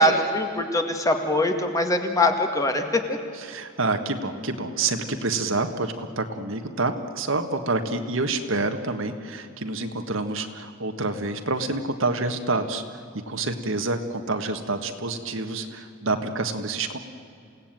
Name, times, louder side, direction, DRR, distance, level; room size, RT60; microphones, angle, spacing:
voice 1, 0.0-3.2, left 1 dB, 15° left, 5 dB, 2.0 m, -22 dB
voice 2, 3.5-12.8 13.3-17.0, right 3 dB, 65° right, 6 dB, 1.8 m, -27 dB
28.0 x 17.5 x 9.1 m, 2.6 s
head